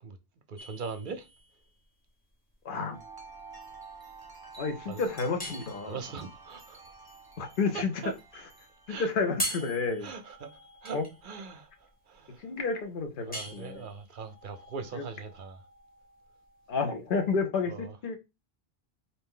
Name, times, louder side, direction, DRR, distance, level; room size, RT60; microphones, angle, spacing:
voice 1, 0.5-1.3 4.9-5.0 5.8-6.8 7.7-8.1 8.9-9.1 10.0-11.7 12.1-12.4 13.3-15.6 17.7-17.9, right 5 dB, 55° right, 0.7 m, -40 dB
sound 1, 0.6-17.4, equal, 10° left, 1.0 m, -43 dB
voice 2, 2.6-3.0 4.6-6.0 7.4-8.1 8.9-10.1 10.9-11.1 12.4-13.8 14.9-15.0 16.7-18.2, left 4 dB, 55° left, 0.9 m, -31 dB
Wind chime, 2.9-9.4, right 4 dB, 20° right, 0.9 m, -49 dB
4.2 x 2.7 x 3.7 m
omnidirectional pair, 1.1 m